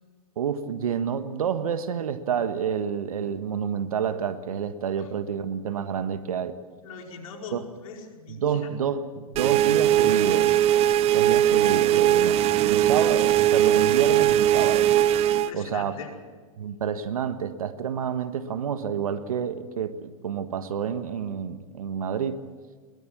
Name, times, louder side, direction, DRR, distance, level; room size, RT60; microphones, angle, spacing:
voice 1, 0.4-6.6 7.5-7.6 8.4-10.6 11.1-14.9 15.5-15.9 16.6-22.4, right 7 dB, 85° right, 10 dB, 1.5 m, -29 dB
voice 2, 6.8-8.7 15.3-16.1, left 5 dB, 70° left, 2 dB, 4.9 m, -41 dB
sound 1, 9.3-15.5, right 11 dB, 35° right, 0.8 m, -20 dB
22.0 x 20.0 x 7.4 m, 1.4 s
hypercardioid pair, 115°, 18 cm